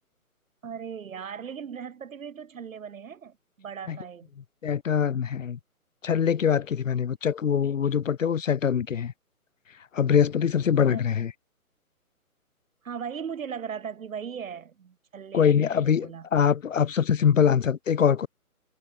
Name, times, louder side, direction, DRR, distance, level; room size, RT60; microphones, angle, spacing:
voice 1, 0.6-4.3 10.9-11.0 12.8-16.3, right 7 dB, 60° right, 1.2 m, -38 dB
voice 2, 4.6-5.6 6.0-9.1 9.9-11.3 15.3-18.3, left 8 dB, 60° left, 1.0 m, -23 dB
figure-of-eight pair, 150°, 44 cm